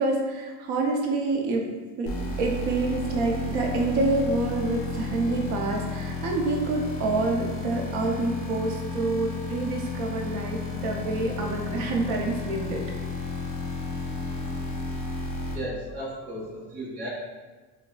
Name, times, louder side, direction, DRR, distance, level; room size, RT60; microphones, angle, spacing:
voice 1, 0.0-1.6 2.0-2.1 2.4-12.8, right 2 dB, 90° right, 1 dB, 0.7 m, -27 dB
sound 1, 2.1-15.6, left 3 dB, 35° left, 0.7 m, -32 dB
voice 2, 15.5-17.1, right 1 dB, 45° right, -7 dB, 1.0 m, -35 dB
4.8 x 2.2 x 2.3 m, 1.3 s
cardioid pair, 180°, 40 cm